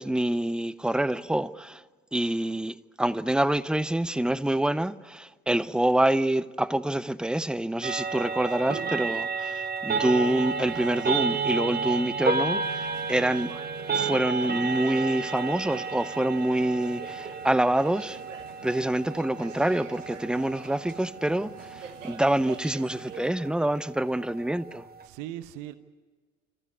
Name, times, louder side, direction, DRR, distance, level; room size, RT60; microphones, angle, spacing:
voice 1, 0.0-1.8 2.1-13.5 13.9-18.2 18.6-24.9, right 1 dB, ahead, 0.6 m, -26 dB
sound 1, 7.8-25.1, right 4 dB, 25° right, 1.3 m, -32 dB
sound 2, 9.9-23.3, right 7 dB, 75° right, 1.4 m, -47 dB
voice 2, 25.0-25.7, right 13 dB, 55° right, 1.1 m, -40 dB
29.5 x 14.5 x 9.7 m
figure-of-eight pair, 60°, 38 cm